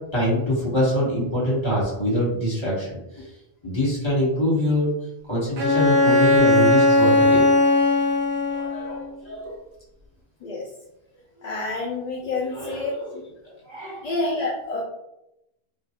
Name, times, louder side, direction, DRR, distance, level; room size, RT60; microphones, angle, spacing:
voice 1, 0.1-3.0 3.6-4.9 5.3-7.4 8.5-9.5 12.5-13.2 13.7-14.1, left 1 dB, 25° left, -7 dB, 1.3 m, -24 dB
Bowed string instrument, 5.6-9.1, left 2 dB, 90° right, 0.9 m, -18 dB
voice 2, 11.4-12.9 14.0-14.8, left 3 dB, 55° left, -3 dB, 0.5 m, -28 dB
3.2 x 2.3 x 2.8 m, 0.87 s
omnidirectional pair, 1.1 m